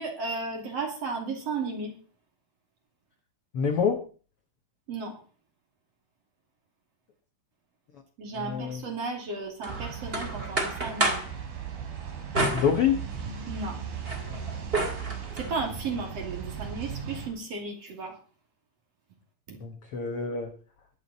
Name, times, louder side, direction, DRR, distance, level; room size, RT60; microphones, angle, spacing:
voice 1, 0.0-1.9 4.9-5.2 8.2-11.2 13.5-13.8 15.4-18.2 19.5-19.6, right 3 dB, 45° right, 2 dB, 3.5 m, -34 dB
voice 2, 3.5-4.0 8.4-8.8 12.5-13.0 19.6-20.5, left 7 dB, 75° left, 5 dB, 1.3 m, -26 dB
sound 1, 9.6-11.3 12.3-13.4 13.8-15.5, right 2 dB, 20° right, 2.1 m, -30 dB
sound 2, 9.7-17.3, right 7 dB, 70° right, 4.7 m, -37 dB
21.5 x 8.4 x 4.2 m, 0.40 s
omnidirectional pair, 4.4 m